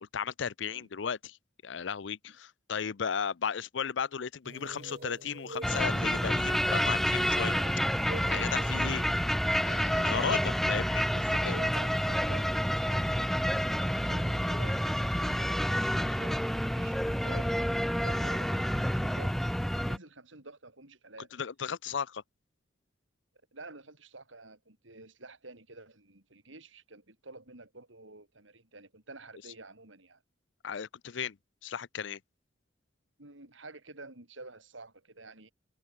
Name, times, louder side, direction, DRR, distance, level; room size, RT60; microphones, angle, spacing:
voice 1, 0.1-1.4 1.6-7.5 8.3-9.0 9.6-11.0 11.4-11.6 21.3-22.2 30.6-31.4 31.6-32.2, left 7 dB, 75° left, 0.5 m, -35 dB
sound 1, 4.4-10.9, right 2 dB, 50° right, 1.9 m, -46 dB
sound 2, 5.6-20.0, equal, ahead, 0.7 m, -29 dB
voice 2, 11.1-17.6 17.9-19.4 19.7-21.3 23.5-30.2 33.2-35.5, right 2 dB, 85° right, 4.7 m, -49 dB
head